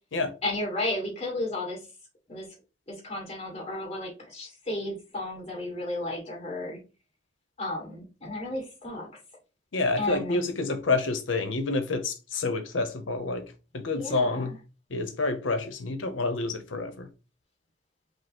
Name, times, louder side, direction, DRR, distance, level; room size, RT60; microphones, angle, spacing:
voice 1, 0.4-1.8 2.3-2.5 2.9-6.8 7.6-9.1 10.0-10.4 13.9-14.6, left 2 dB, 35° left, 2.0 m, -33 dB
voice 2, 9.7-13.4 13.7-14.5 14.9-17.1, left 3 dB, 85° left, 0.8 m, -28 dB
5.3 x 2.0 x 4.3 m
head